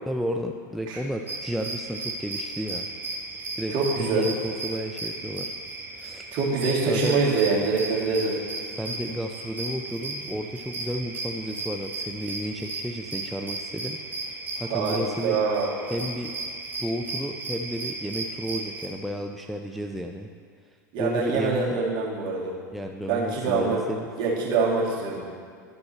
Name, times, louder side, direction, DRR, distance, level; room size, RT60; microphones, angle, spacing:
voice 1, 0.1-3.2 3.6-5.5 5.9-6.3 6.8-7.2 8.7-15.4 15.9-16.3 16.8-20.3 21.0-21.8 22.7-24.1, equal, ahead, 2 dB, 0.4 m, -32 dB
sound 1, 1.3-18.9, right 3 dB, 20° right, 1.3 m, -35 dB
voice 2, 3.7-4.3 6.3-8.4 14.7-15.8 20.9-22.5 23.1-23.8 24.2-25.2, right 4 dB, 45° right, -4 dB, 2.2 m, -25 dB
11.5 x 4.4 x 4.3 m, 2.2 s
hypercardioid pair, 90°, 10 cm